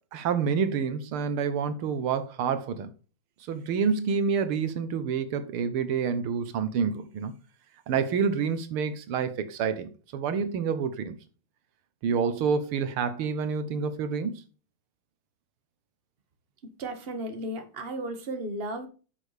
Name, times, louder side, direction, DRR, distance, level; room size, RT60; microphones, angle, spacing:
voice 1, 0.1-2.9 3.5-7.3 7.9-11.2 12.0-14.4, right 6 dB, 85° right, 1.9 m, -28 dB
voice 2, 16.6-18.9, right 1 dB, 30° right, 1.6 m, -35 dB
9.6 x 6.4 x 3.4 m
omnidirectional pair, 2.3 m